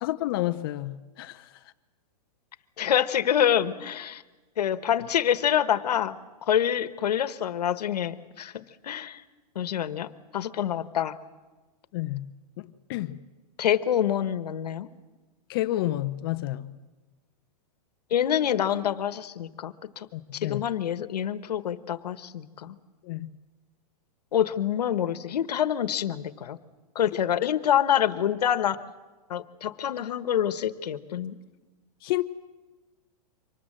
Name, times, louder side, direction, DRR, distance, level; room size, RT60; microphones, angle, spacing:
voice 1, 0.0-1.4 11.9-12.2 12.6-13.2 15.5-16.7 20.1-20.6 23.0-23.3 27.4-27.5 32.0-32.2, left 16 dB, 35° left, 0.7 m, -30 dB
voice 2, 2.8-4.2 4.6-6.2 6.4-9.2 9.5-10.1 10.3-11.1 13.6-14.9 18.1-20.1 20.3-22.7 24.3-26.6 26.9-28.8 29.3-31.3, left 10 dB, 85° left, 1.2 m, -26 dB
24.5 x 19.5 x 7.6 m
hypercardioid pair, 165°, 20 cm